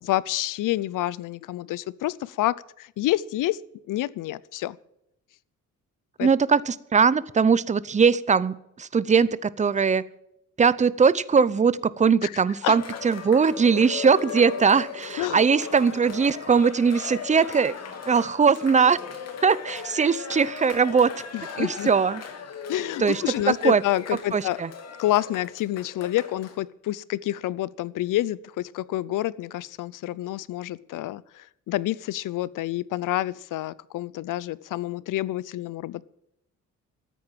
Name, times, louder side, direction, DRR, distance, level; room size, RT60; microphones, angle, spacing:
voice 1, 0.0-3.6 3.9-4.8 6.2-6.3 12.2-12.8 15.2-15.4 21.3-21.9 22.7-24.6 25.0-36.0, left 15 dB, 85° left, 21 dB, 0.7 m, -28 dB
voice 2, 6.2-10.0 10.6-17.8 18.1-19.0 19.4-21.1 21.6-22.2 23.0-23.2 23.6-23.8 24.3-24.7, right 5 dB, 25° right, 18 dB, 0.6 m, -21 dB
Cheering, 12.7-26.6, left 6 dB, 55° left, 2.8 m, -38 dB
14.0 x 9.3 x 7.6 m, 0.78 s
cardioid pair, 120°, 31 cm